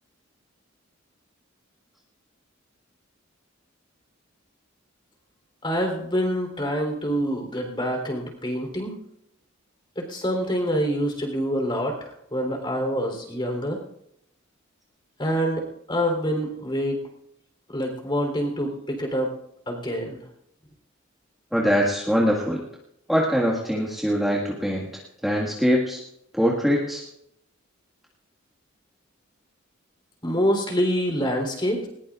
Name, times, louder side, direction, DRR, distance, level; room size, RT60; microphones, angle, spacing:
voice 1, 5.6-8.9 10.0-13.8 15.2-15.6 15.9-17.0 17.7-19.3 19.7-20.2 30.2-31.9, equal, 25° left, 2 dB, 3.6 m, -26 dB
voice 2, 21.5-22.6 23.1-24.9 25.2-26.0 26.3-27.0, equal, ahead, -4 dB, 1.8 m, -22 dB
20.5 x 20.0 x 2.5 m, 0.78 s
head